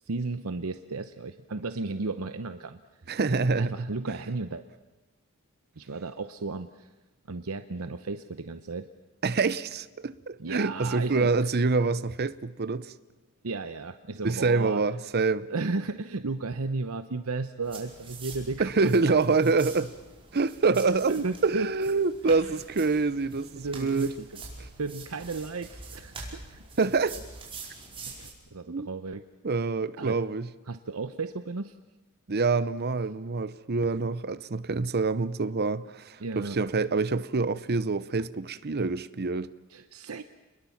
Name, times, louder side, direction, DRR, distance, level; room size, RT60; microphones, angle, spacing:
voice 1, 0.1-2.8 3.6-4.6 5.8-6.9 7.3-8.9 10.4-11.5 13.4-14.8 15.5-18.9 21.1-21.7 23.6-24.4 24.8-26.6 28.2-29.2 30.0-30.2 30.7-31.7 36.2-36.6 39.7-40.2, right 3 dB, 70° right, 0.8 m, -34 dB
voice 2, 3.1-3.9 9.2-12.9 14.2-15.5 18.6-19.9 20.3-21.1 21.4-24.1 24.6-24.7 26.8-27.2 28.7-28.9 29.4-30.5 32.3-39.5, right 4 dB, 45° right, 0.7 m, -26 dB
sound 1, 17.6-28.3, right 3 dB, 25° right, 5.2 m, -45 dB
29.5 x 21.5 x 7.2 m
head